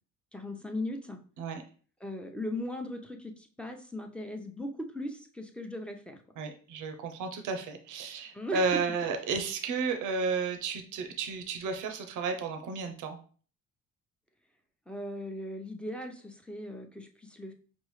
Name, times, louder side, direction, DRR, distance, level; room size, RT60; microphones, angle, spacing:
voice 1, 0.3-1.2 2.0-6.2 8.3-8.8 14.9-17.5, left 1 dB, 5° left, 3 dB, 0.7 m, -38 dB
voice 2, 6.4-13.2, right 4 dB, 85° right, 6 dB, 0.7 m, -32 dB
5.2 x 2.4 x 3.1 m, 0.42 s
cardioid pair, 90°, 30 cm